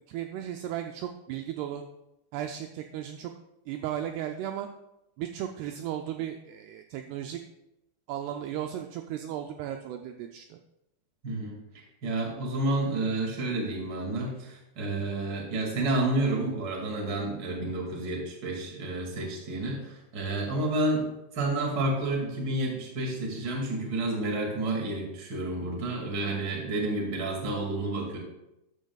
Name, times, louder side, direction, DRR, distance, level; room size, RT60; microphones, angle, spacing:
voice 1, 0.1-1.8 2.3-3.3 3.7-4.7 5.2-7.4 8.1-10.6, right 11 dB, 85° right, 5 dB, 2.4 m, -35 dB
voice 2, 11.2-11.6 12.0-21.1 21.3-28.2, right 2 dB, 35° right, 0 dB, 2.0 m, -30 dB
13.0 x 11.5 x 2.4 m, 0.90 s
omnidirectional pair, 5.1 m